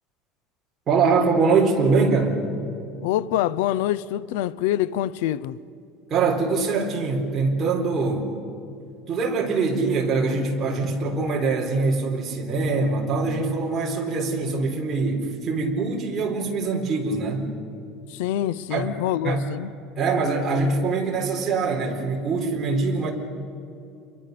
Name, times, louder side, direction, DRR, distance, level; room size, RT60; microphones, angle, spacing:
voice 1, 0.9-2.4 6.1-8.3 9.1-17.5 18.7-18.9 19.2-19.4 20.0-23.1, right 4 dB, 25° right, 4.0 m, -23 dB
voice 2, 3.0-5.6 18.1-19.7, left 13 dB, 85° left, 0.7 m, -25 dB
29.5 x 23.0 x 6.8 m
cardioid pair, 165°, 0 cm